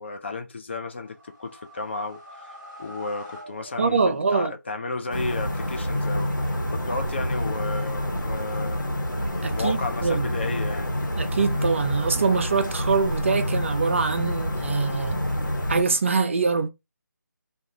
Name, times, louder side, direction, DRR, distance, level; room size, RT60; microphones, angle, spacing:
voice 1, 0.0-4.0 4.3-6.3 6.7-8.8 9.5-11.0, left 3 dB, 35° left, 0.4 m, -33 dB
sound 1, 0.8-4.6, equal, 5° right, 0.9 m, -45 dB
voice 2, 3.8-4.5 9.4-10.3 11.2-15.2 15.7-16.7, right 4 dB, 40° right, 0.4 m, -24 dB
sound 2, 5.1-15.8, equal, 85° left, 1.0 m, -28 dB
2.4 x 2.2 x 2.8 m
figure-of-eight pair, 155°, 10 cm